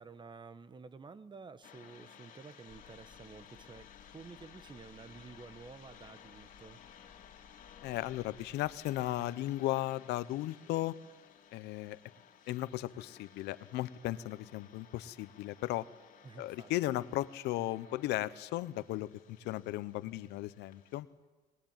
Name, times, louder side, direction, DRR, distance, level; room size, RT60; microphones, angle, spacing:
voice 1, 0.0-6.8 16.2-16.7, right 4 dB, 25° right, 13 dB, 1.3 m, -51 dB
sound 1, 1.6-21.0, left 8 dB, 50° left, 2.8 m, -58 dB
sound 2, 2.7-9.2, left 7 dB, 30° left, 2.7 m, -62 dB
voice 2, 7.8-10.9 11.5-12.0 12.5-15.9 16.4-21.1, left 16 dB, 85° left, 15 dB, 0.9 m, -36 dB
22.0 x 20.0 x 9.0 m, 1.2 s
cardioid pair, 110°, 17 cm